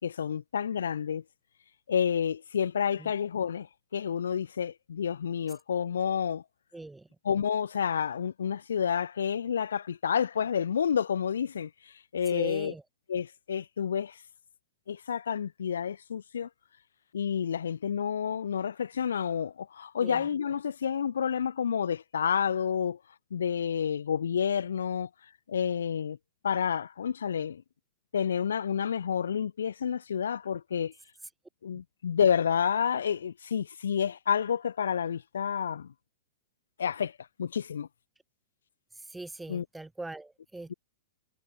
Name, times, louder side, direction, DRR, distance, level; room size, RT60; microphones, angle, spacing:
voice 1, 0.0-1.2 1.9-3.7 3.9-6.4 7.2-12.7 13.1-14.2 14.9-16.5 17.1-23.0 23.3-25.1 25.5-26.2 26.4-27.6 28.1-30.9 31.6-35.9 36.8-37.9 39.5-39.7, left 8 dB, 80° left, 2.2 m, -29 dB
voice 2, 6.7-7.1 12.3-12.8 20.0-20.2 39.1-40.7, right 2 dB, 5° right, 1.0 m, -41 dB
hypercardioid pair, 110°, 0 cm